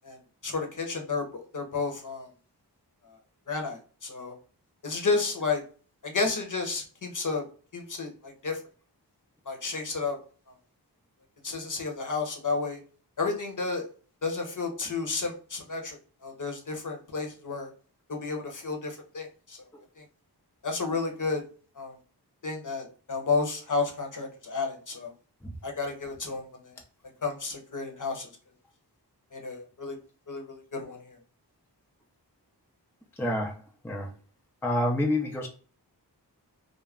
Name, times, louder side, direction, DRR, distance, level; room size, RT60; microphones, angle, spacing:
voice 1, 0.4-1.2 1.5-2.3 3.5-4.3 4.8-5.6 6.0-7.4 7.7-8.6 9.5-10.2 11.4-12.8 13.2-13.9 14.2-17.7 18.1-19.6 20.0-20.1 20.6-21.4 21.8-21.9 22.4-25.1 25.6-26.7 27.2-28.3 29.3-30.0 30.3-31.2, left 4 dB, 50° left, 3 dB, 0.8 m, -31 dB
voice 2, 33.2-33.6 33.8-34.1 34.6-35.5, left 1 dB, 5° left, 1 dB, 0.5 m, -27 dB
2.4 x 2.0 x 3.3 m, 0.40 s
wide cardioid pair, 45°, 41 cm